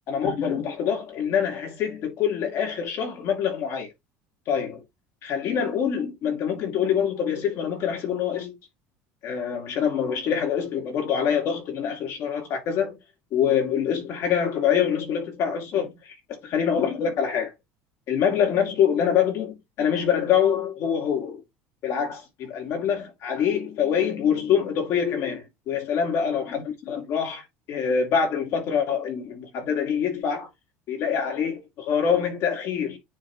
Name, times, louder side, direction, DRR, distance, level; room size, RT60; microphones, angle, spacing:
voice 1, 0.1-3.9 4.5-4.8 5.2-8.5 9.2-13.0 13.3-16.1 16.4-17.5 18.1-21.4 21.8-27.4 27.7-30.5 30.9-33.0, left 8 dB, 55° left, 2.9 m, -25 dB
9.5 x 3.5 x 3.0 m
cardioid pair, 125°, 6 cm